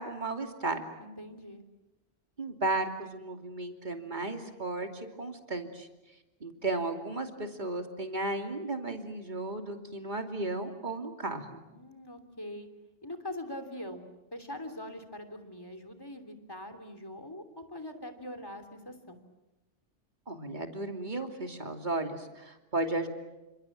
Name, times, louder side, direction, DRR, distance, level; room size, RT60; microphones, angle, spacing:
voice 1, 0.0-0.8 2.4-5.9 6.4-11.6 20.3-23.1, right 2 dB, 40° right, 5 dB, 2.9 m, -34 dB
voice 2, 1.0-1.7 11.7-12.7 13.0-19.2, left 1 dB, 20° left, 7 dB, 3.2 m, -43 dB
29.5 x 27.0 x 7.5 m, 1.0 s
omnidirectional pair, 1.2 m